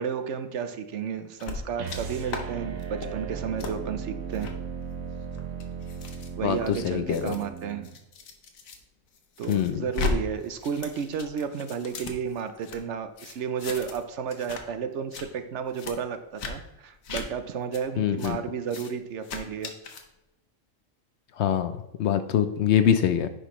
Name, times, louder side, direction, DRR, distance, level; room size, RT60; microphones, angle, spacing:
voice 1, 0.0-4.5 6.4-7.9 9.4-19.7, right 7 dB, 65° right, 9 dB, 0.9 m, -32 dB
sound 1, 1.4-2.0 2.3-2.4 2.8-3.1 3.6-3.7 4.3-4.5 5.2-8.8 9.1-10.1 10.4-12.8 13.2-14.0 14.3-14.6 14.9-15.2 15.7-15.9 16.4-16.5 17.0-17.2 17.7-17.8 18.2-18.3 18.7-18.9 19.2-20.0, left 5 dB, 80° left, 1.4 m, -36 dB
sound 2, 1.7-7.9, right 6 dB, 90° right, 1.3 m, -36 dB
voice 2, 6.4-7.4 9.5-9.8 18.0-18.4 21.4-23.3, left 9 dB, 65° left, 10 dB, 0.8 m, -24 dB
9.8 x 5.1 x 3.0 m, 0.94 s
omnidirectional pair, 1.4 m